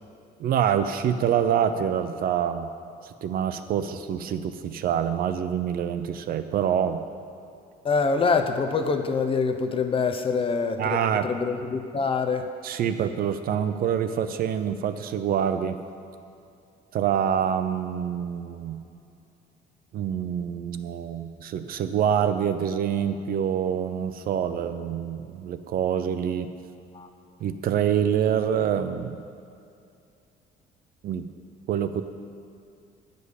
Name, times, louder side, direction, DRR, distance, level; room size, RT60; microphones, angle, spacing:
voice 1, 0.4-2.7 3.0-7.0 10.8-11.3 12.6-15.8 16.9-18.8 19.9-26.5 27.4-29.2 31.0-31.3 31.7-32.0, right 8 dB, 60° right, 10 dB, 0.6 m, -26 dB
voice 2, 7.8-12.5 26.9-27.1, left 4 dB, 35° left, 7 dB, 0.8 m, -25 dB
11.0 x 5.3 x 8.2 m, 2.5 s
cardioid pair, 110°, 17 cm